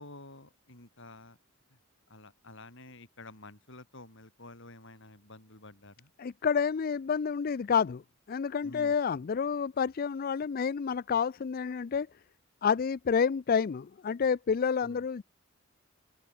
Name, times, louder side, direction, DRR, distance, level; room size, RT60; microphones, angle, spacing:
voice 1, 0.0-1.4 2.1-6.1 8.6-9.2 14.8-15.1, left 2 dB, 60° left, 6.6 m, -50 dB
voice 2, 6.2-8.0 8.3-12.1 12.6-15.2, left 6 dB, 45° left, 0.4 m, -29 dB
open air
head